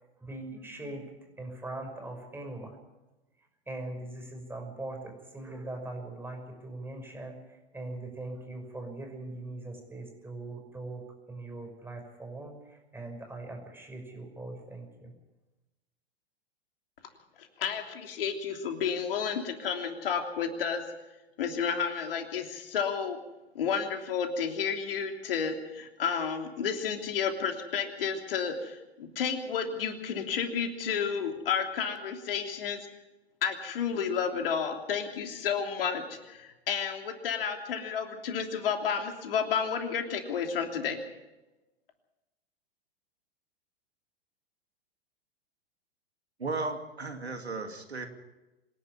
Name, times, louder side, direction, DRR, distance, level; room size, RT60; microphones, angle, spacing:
voice 1, 0.2-2.8 3.7-11.0 11.3-15.1, right 2 dB, 5° right, 3 dB, 5.9 m, -41 dB
voice 2, 17.4-20.8 21.4-23.2 23.5-32.8 33.4-41.0, left 7 dB, 60° left, 4 dB, 3.2 m, -31 dB
voice 3, 46.4-48.1, right 3 dB, 85° right, 6 dB, 2.7 m, -35 dB
26.0 x 11.0 x 9.8 m, 1.0 s
figure-of-eight pair, 100°, 31 cm